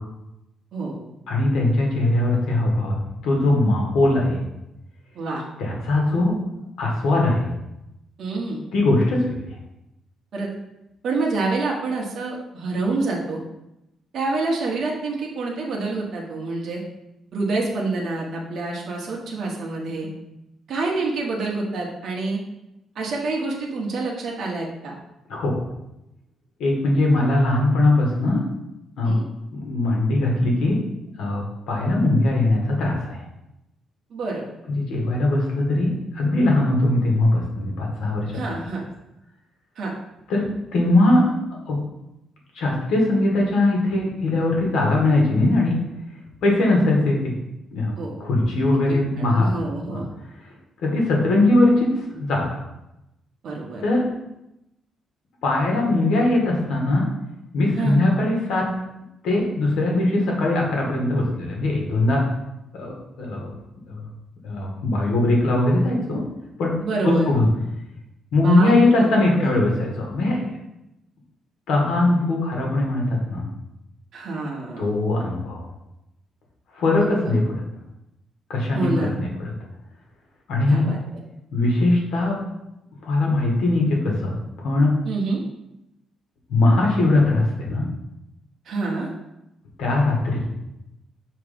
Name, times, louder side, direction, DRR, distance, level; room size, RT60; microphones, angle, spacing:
voice 1, 1.3-2.9 3.2-4.4 5.6-6.3 6.8-7.5 8.7-9.5 25.3-25.6 26.6-28.4 29.0-29.2 29.5-30.8 31.2-33.2 34.7-38.4 40.3-40.4 40.7-41.2 41.7-41.8 42.5-45.8 46.4-47.3 47.7-47.9 48.2-49.5 50.8-52.6 53.8-54.0 55.4-57.1 57.5-58.7 59.2-62.2 62.8-63.6 63.9-64.1 64.4-66.2 66.6-66.7 67.0-67.5 68.3-70.4 71.7-73.5 74.8-75.7 76.7-77.6 78.5-79.5 80.5-80.9 81.5-82.4 83.0-84.9 86.5-87.9 89.8-90.4, left 2 dB, 75° left, -1 dB, 1.6 m, -20 dB
voice 2, 8.2-8.6 10.3-10.5 11.0-13.4 14.1-16.8 17.3-20.1 20.7-22.4 22.9-24.9 29.0-29.2 34.1-34.5 38.3-38.8 39.8-39.9 47.9-48.1 49.2-50.0 53.4-53.8 57.7-58.0 66.8-67.3 68.4-69.0 69.4-69.5 74.1-74.9 77.0-77.3 78.7-79.1 80.7-81.0 85.0-85.4 88.7-89.1, right 3 dB, 50° right, -2 dB, 1.2 m, -27 dB
5.9 x 3.2 x 5.1 m, 0.89 s
cardioid pair, 170°, 0 cm